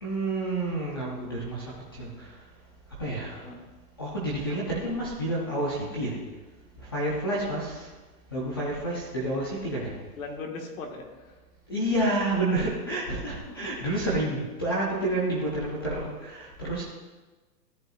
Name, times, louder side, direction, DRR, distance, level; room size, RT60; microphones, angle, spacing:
voice 1, 0.0-2.3 3.0-3.5 4.0-6.1 6.8-7.9 8.3-9.9 11.7-16.8, right 1 dB, 15° left, -5 dB, 0.4 m, -29 dB
voice 2, 10.1-11.4 13.6-13.7, left 3 dB, 55° left, 3 dB, 1.6 m, -39 dB
13.5 x 7.4 x 2.4 m, 1.2 s
hypercardioid pair, 160°, 50 cm